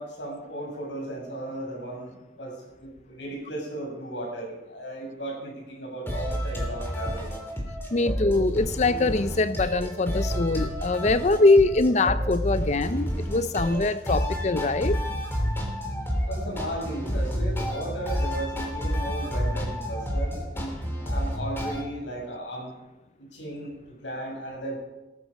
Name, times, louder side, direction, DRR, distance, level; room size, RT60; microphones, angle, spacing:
voice 1, 0.0-2.5 2.8-7.4 16.2-22.7 23.2-23.7 24.0-24.8, right 1 dB, 75° left, -1 dB, 7.2 m, -35 dB
sound 1, 6.1-21.8, equal, 10° left, 3.1 m, -30 dB
voice 2, 7.9-15.0, left 2 dB, 40° left, 13 dB, 0.5 m, -23 dB
18.5 x 14.0 x 5.2 m, 1.0 s
head